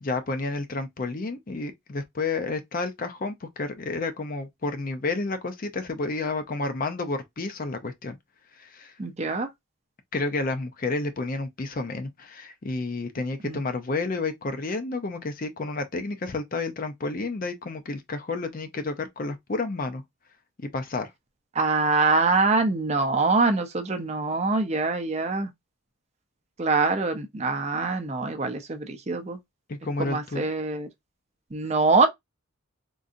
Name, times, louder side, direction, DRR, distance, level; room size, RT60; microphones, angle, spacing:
voice 1, 0.0-8.2 8.5-8.9 10.1-20.0 20.6-21.1 29.7-30.5, left 3 dB, 40° left, 0.5 m, -30 dB
voice 2, 9.0-9.5 13.4-13.6 21.6-25.5 26.6-29.4 30.0-30.9 31.5-32.1, right 3 dB, 30° right, 0.5 m, -24 dB
3.8 x 2.6 x 2.5 m
head